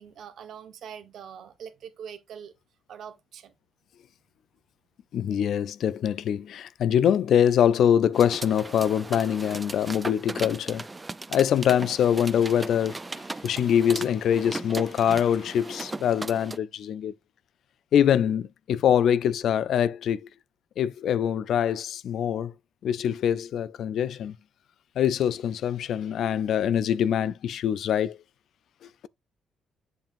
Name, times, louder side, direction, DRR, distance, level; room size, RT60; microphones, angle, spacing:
voice 1, 0.0-2.5 2.9-3.5, right 8 dB, 70° right, 1.2 m, -43 dB
voice 2, 5.1-10.9 11.3-13.0 13.4-17.1 17.9-20.3 20.8-22.5 22.8-24.3 25.0-28.2, left 9 dB, 70° left, 0.4 m, -24 dB
sound 1, 8.1-16.6, right 3 dB, 20° right, 0.4 m, -37 dB
7.8 x 7.0 x 2.5 m
cardioid pair, 90°, 0 cm